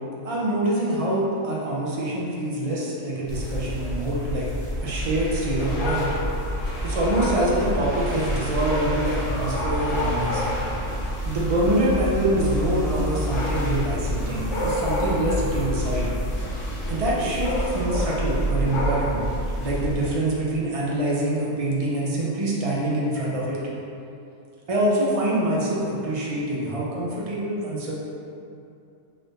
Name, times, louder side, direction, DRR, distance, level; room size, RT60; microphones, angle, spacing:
voice 1, 0.2-4.5 4.8-6.1 6.8-10.4 11.2-16.1 16.9-19.2 19.6-23.6 24.7-27.9, right 1 dB, 45° right, -6 dB, 0.4 m, -25 dB
sound 1, 3.3-20.1, equal, 35° left, 0.9 m, -29 dB
Dog, 5.6-19.3, left 1 dB, 70° left, 1.1 m, -32 dB
3.9 x 2.6 x 3.4 m, 2.6 s
omnidirectional pair, 1.5 m